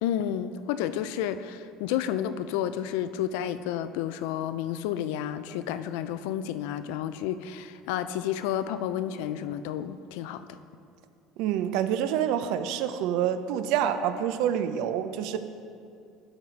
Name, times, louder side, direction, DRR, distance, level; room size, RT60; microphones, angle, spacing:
voice 1, 0.0-10.6, left 10 dB, 80° left, 12 dB, 0.3 m, -31 dB
voice 2, 11.4-15.4, right 9 dB, 65° right, 10 dB, 0.4 m, -27 dB
12.0 x 4.0 x 4.4 m, 2.4 s
cardioid pair, 165°, 0 cm